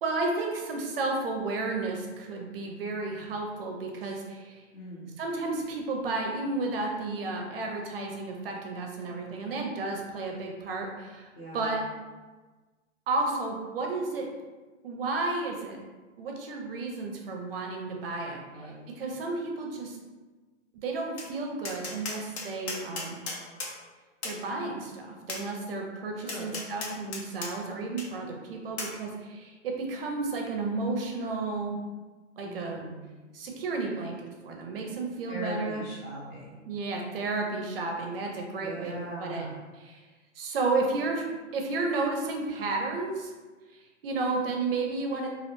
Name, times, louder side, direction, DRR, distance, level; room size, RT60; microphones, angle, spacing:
voice 1, 0.0-4.6 5.2-11.8 13.1-14.3 14.8-15.8 16.2-20.0 20.8-23.2 24.2-31.8 32.4-32.8 33.3-34.2 34.4-35.8 36.7-39.5 39.7-40.0 40.3-41.2 41.5-43.3 43.7-45.3, right 3 dB, 50° right, 1 dB, 0.4 m, -32 dB
voice 2, 4.7-5.2 11.3-11.8 18.5-18.9 26.2-26.6 32.4-33.1 35.3-36.6 38.6-39.6, equal, 20° left, -8 dB, 0.4 m, -40 dB
Tap, 21.2-21.3 21.6-23.7 24.2-24.4 25.3-25.4 26.3-27.5 28.0-28.1 28.8-28.9, left 3 dB, 60° left, 0.7 m, -35 dB
2.3 x 2.1 x 2.9 m, 1.3 s
hypercardioid pair, 140°, 38 cm